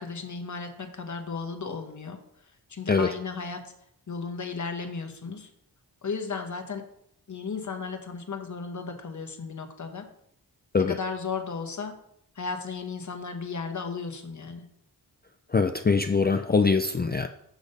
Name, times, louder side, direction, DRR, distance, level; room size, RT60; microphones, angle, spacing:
voice 1, 0.0-2.2 2.7-3.7 4.1-5.5 6.0-6.9 7.3-10.1 10.8-12.0 12.4-14.7, left 5 dB, 45° left, 5 dB, 1.1 m, -35 dB
voice 2, 15.5-17.3, left 4 dB, 25° left, 6 dB, 0.4 m, -23 dB
6.2 x 5.1 x 5.3 m, 0.74 s
wide cardioid pair, 70°, 41 cm